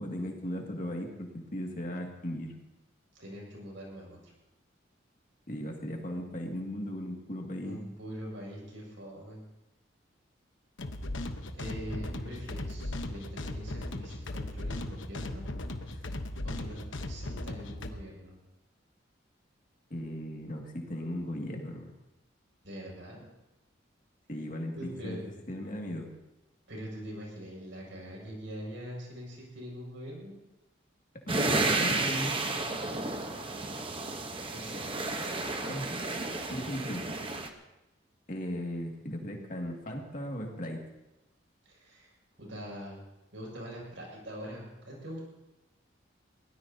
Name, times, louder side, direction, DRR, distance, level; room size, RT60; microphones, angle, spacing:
voice 1, 0.0-2.5 5.5-7.8 19.9-21.9 24.3-25.2 25.5-26.1 31.3-32.4 35.7-35.9 36.5-37.1 38.3-40.8, equal, 40° left, 1 dB, 2.2 m, -37 dB
voice 2, 3.1-4.3 7.6-9.4 11.5-15.5 15.9-16.1 16.4-18.4 22.6-23.2 24.7-25.2 26.7-30.3 33.3-34.1 34.5-35.0 41.6-42.1 42.4-43.0 43.3-45.2, equal, 75° right, -3 dB, 6.5 m, -43 dB
sound 1, 10.8-17.9, left 1 dB, 80° left, 1.1 m, -37 dB
sound 2, 31.3-37.5, right 3 dB, 25° right, 1.0 m, -32 dB
23.0 x 17.0 x 2.8 m, 0.98 s
head